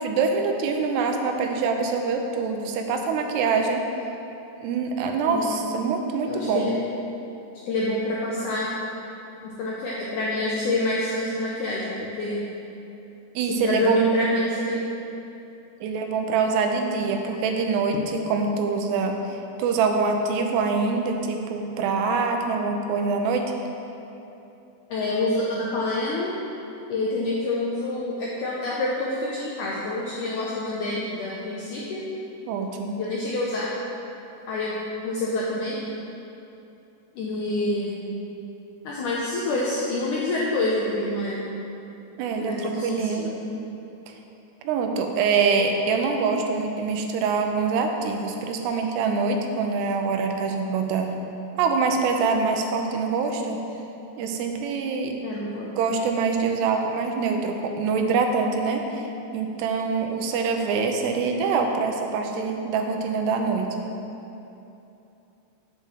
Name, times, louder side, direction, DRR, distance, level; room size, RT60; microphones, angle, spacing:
voice 1, 0.0-3.8 4.6-6.7 13.4-14.0 15.8-23.5 32.5-33.0 42.2-43.2 44.1-44.2 44.6-51.2 51.6-53.6 54.2-55.1 55.8-59.1 59.3-63.9, right 4 dB, 85° right, 4 dB, 2.9 m, -25 dB
voice 2, 5.2-5.6 6.3-6.8 7.7-8.7 9.4-12.4 13.4-14.8 24.9-26.3 26.9-32.0 33.0-33.7 34.5-34.7 35.0-35.8 37.2-38.1 38.8-41.5 42.4-43.5 55.2-55.8, left 2 dB, 80° left, -5 dB, 1.8 m, -27 dB
7.5 x 5.7 x 7.4 m, 2.9 s
omnidirectional pair, 4.7 m